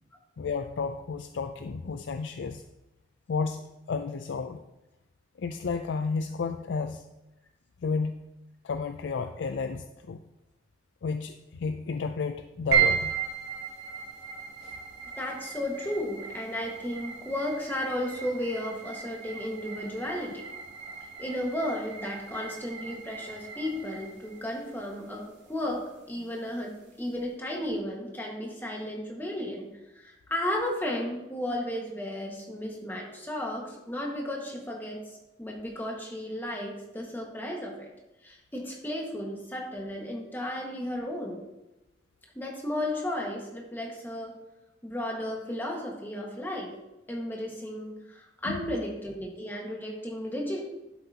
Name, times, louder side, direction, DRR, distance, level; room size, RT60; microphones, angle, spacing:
voice 1, 0.4-2.6 3.3-3.6 3.9-4.6 5.4-7.1 7.8-8.2 8.6-10.2 11.0-13.1 14.6-14.8 48.5-48.6, left 4 dB, 75° left, 8 dB, 0.4 m, -32 dB
sound 1, 12.7-27.2, right 8 dB, 60° right, 3.0 m, -35 dB
voice 2, 15.2-20.5 21.2-29.7 29.9-37.9 38.2-41.4 42.3-44.3 44.8-46.8 47.1-50.6, left 1 dB, 10° left, -1 dB, 1.5 m, -34 dB
11.5 x 7.8 x 2.8 m, 0.97 s
head